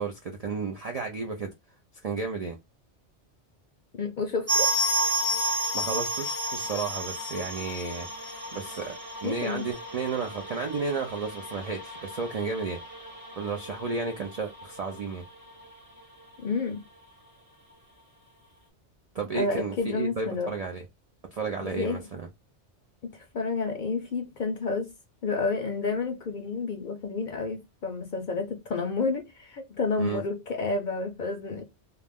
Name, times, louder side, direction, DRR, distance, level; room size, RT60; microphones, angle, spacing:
voice 1, 0.0-1.5 2.0-2.6 5.7-8.1 8.5-8.9 9.2-12.8 13.4-15.2 19.1-20.9 21.3-22.3 30.0-30.2, right 4 dB, 75° right, 0.3 m, -32 dB
voice 2, 3.9-4.7 9.2-9.7 16.4-16.8 19.3-20.5 21.6-22.0 23.0-24.9 25.2-31.6, left 4 dB, 60° left, 0.5 m, -30 dB
sound 1, 4.5-15.0 15.3-15.4 15.6-15.7 16.3-16.4, equal, 35° right, 0.8 m, -32 dB
2.3 x 2.1 x 3.4 m
omnidirectional pair, 1.2 m